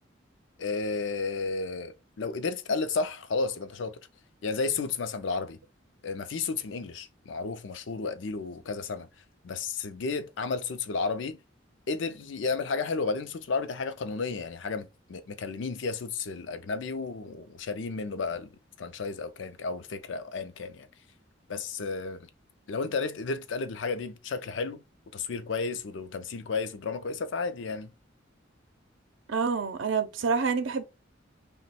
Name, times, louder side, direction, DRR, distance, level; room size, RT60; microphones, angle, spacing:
voice 1, 0.6-3.9 4.4-5.6 6.0-9.1 9.4-11.4 11.9-18.5 18.8-20.9 21.5-22.3 22.7-24.8 25.1-27.9, left 4 dB, 70° left, 0.5 m, -32 dB
voice 2, 29.3-30.8, right 5 dB, 85° right, 0.6 m, -27 dB
2.9 x 2.1 x 4.1 m
head